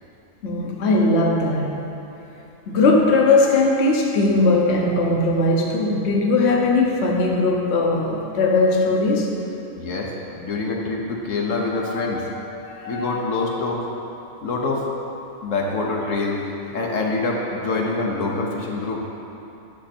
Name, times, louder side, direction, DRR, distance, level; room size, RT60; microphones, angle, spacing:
voice 1, 0.4-1.8 2.7-9.4 11.6-12.2 12.6-13.4, left 2 dB, 60° left, -1 dB, 1.1 m, -19 dB
voice 2, 9.7-12.3 12.9-13.8 14.4-14.8 15.4-16.4 16.7-19.0, left 3 dB, 80° left, -1 dB, 1.3 m, -25 dB
10.0 x 6.3 x 4.3 m, 2.9 s
omnidirectional pair, 1.3 m